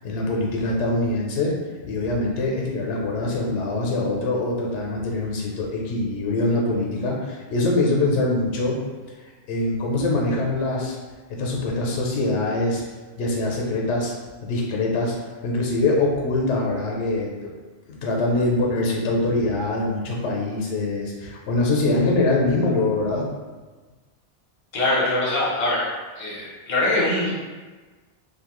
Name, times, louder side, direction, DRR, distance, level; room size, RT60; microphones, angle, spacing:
voice 1, 0.0-1.6 1.9-8.8 9.5-11.0 11.3-12.8 13.2-14.1 14.4-17.6 17.9-23.3, left 2 dB, 90° left, -1 dB, 0.9 m, -23 dB
voice 2, 24.7-25.8 26.1-27.3, left 2 dB, 45° left, -6 dB, 0.8 m, -23 dB
2.7 x 2.2 x 2.9 m, 1.3 s
omnidirectional pair, 1.1 m